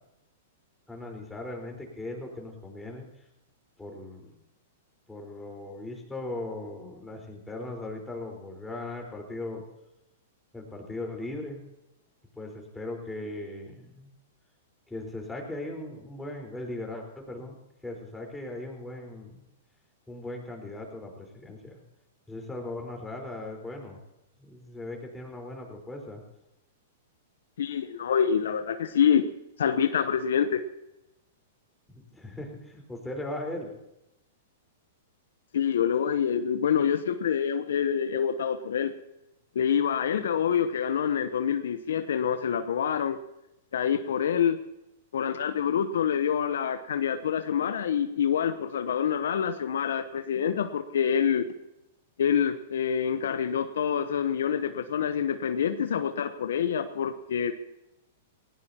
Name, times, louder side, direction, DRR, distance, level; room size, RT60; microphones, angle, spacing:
voice 1, 0.9-3.0 3.8-4.3 5.1-9.6 10.5-11.6 12.4-14.1 14.9-17.5 17.8-19.4 20.1-21.8 22.3-24.0 24.4-26.2 31.9-33.8, left 2 dB, 5° left, 0 dB, 4.5 m, -38 dB
voice 2, 27.6-29.3 29.6-30.6 35.5-38.9 39.5-43.2 43.7-44.6 45.1-51.5 52.2-57.5, left 8 dB, 75° left, 10 dB, 0.9 m, -26 dB
19.5 x 17.5 x 2.9 m, 0.89 s
hypercardioid pair, 115°, 0 cm